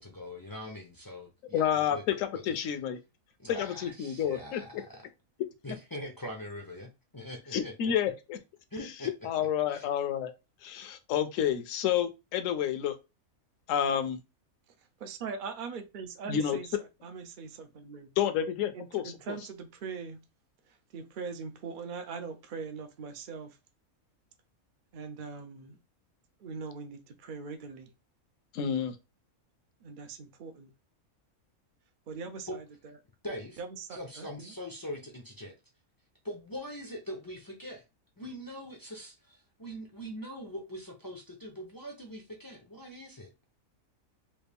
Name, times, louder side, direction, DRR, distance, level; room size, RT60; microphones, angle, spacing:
voice 1, 0.0-2.2 2.5-2.6 3.4-5.0 5.6-7.9 8.7-9.1 9.7-9.9 32.5-32.6 33.2-33.6 33.9-35.5 36.2-37.8 38.2-43.3, equal, 35° left, 0.3 m, -42 dB
voice 2, 1.5-3.0 3.5-4.8 7.5-8.4 9.2-10.3 10.6-13.0 13.7-14.2 16.3-16.6 18.2-19.4 28.5-29.0, left 9 dB, 70° left, 0.9 m, -29 dB
voice 3, 15.0-16.7 17.0-18.1 18.7-20.2 20.9-23.5 24.9-25.8 26.4-27.9 29.8-30.7 32.1-32.6 33.6-34.5, right 5 dB, 75° right, 0.4 m, -41 dB
3.2 x 2.4 x 3.4 m
omnidirectional pair, 1.5 m